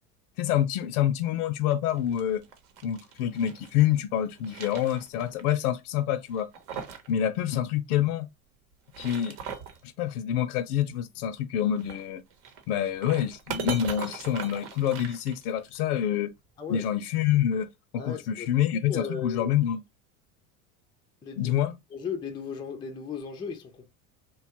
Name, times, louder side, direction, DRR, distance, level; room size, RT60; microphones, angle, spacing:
voice 1, 0.4-2.4 2.8-6.5 7.1-8.3 9.0-9.4 9.8-12.2 12.7-16.3 16.7-19.8 21.4-21.7, left 10 dB, 75° left, 0.5 m, -27 dB
sound 1, 1.9-3.7 4.2-5.4 5.7-5.8 6.3-7.1 7.4-7.5 8.7-9.8 11.7-15.8, right 7 dB, 60° right, 0.9 m, -40 dB
voice 2, 18.0-19.5 21.2-21.6 21.9-23.9, left 6 dB, 10° left, 0.4 m, -36 dB
2.9 x 2.3 x 2.8 m
hypercardioid pair, 95°, 45 cm